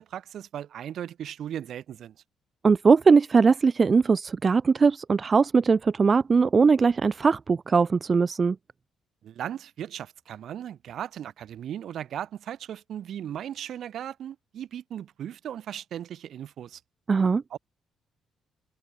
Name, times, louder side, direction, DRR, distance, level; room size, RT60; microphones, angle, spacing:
voice 1, 0.0-2.2 9.2-16.8 17.5-17.6, right 10 dB, 70° right, 7.5 m, -37 dB
voice 2, 2.6-8.6 17.1-17.4, right 5 dB, 35° right, 0.8 m, -20 dB
cardioid pair, 90°, 0 cm